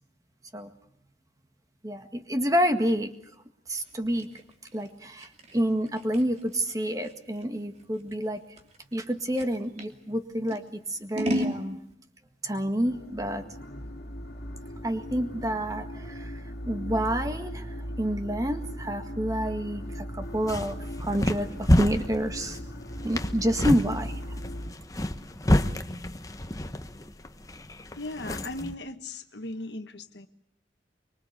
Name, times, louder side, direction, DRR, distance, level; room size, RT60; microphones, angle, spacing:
voice 1, 1.8-3.1 3.7-4.3 4.7-8.4 8.9-11.8 12.4-13.4 13.7-13.8 14.8-22.6 23.0-24.4, equal, 20° right, 7 dB, 1.8 m, -29 dB
Scissors, 3.8-9.9 10.5-11.6, equal, 40° right, 2.8 m, -35 dB
sound 1, 12.8-24.7, equal, 60° left, 2.3 m, -38 dB
sound 2, 20.2-28.7, left 1 dB, 20° left, 1.0 m, -29 dB
voice 2, 27.9-30.3, left 2 dB, 80° left, 10 dB, 1.4 m, -37 dB
24.5 x 23.5 x 8.2 m, 0.75 s
head